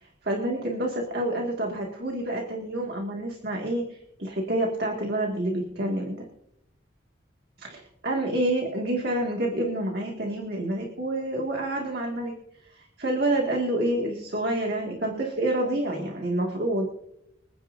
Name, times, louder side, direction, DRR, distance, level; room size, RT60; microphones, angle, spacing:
voice 1, 0.0-6.3 7.6-12.3 12.7-16.9, right 1 dB, 55° right, -1 dB, 2.0 m, -28 dB
26.5 x 9.7 x 2.6 m, 0.79 s
head